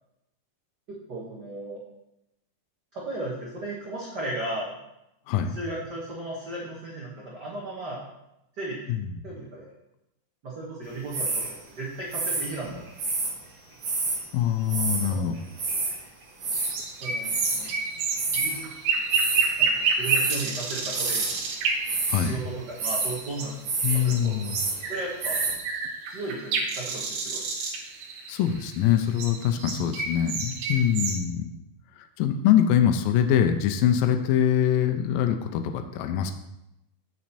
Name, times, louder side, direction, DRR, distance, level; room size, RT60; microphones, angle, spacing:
voice 1, 0.9-1.8 2.9-4.7 5.5-8.1 8.6-8.8 9.2-9.7 10.4-12.8 15.0-15.2 17.0-17.7 18.1-18.7 19.0-19.1 19.6-19.7 20.0-21.3 22.1-23.5 23.9-25.4 26.1-27.5 29.7-29.8, right 2 dB, 90° right, -5 dB, 0.9 m, -35 dB
voice 2, 5.3-5.6 8.9-9.2 14.3-15.4 22.1-22.4 23.8-24.6 28.3-31.5 32.2-36.3, left 9 dB, 80° left, 6 dB, 2.2 m, -24 dB
sound 1, 11.1-11.6 12.1-13.3 13.8-14.2 14.7-15.1 15.4-15.9 16.4-16.7 17.2-17.7 18.0-18.6 19.1-19.5 20.0-20.5 20.9-21.4 21.8-22.3 22.8-23.2 23.6-24.0 24.3-24.8 25.2-25.6, right 3 dB, 50° right, 2.5 m, -28 dB
sound 2, 16.5-23.6 23.8-31.2, right 4 dB, 70° right, 2.5 m, -29 dB
7.5 x 6.1 x 4.1 m, 0.87 s
omnidirectional pair, 4.2 m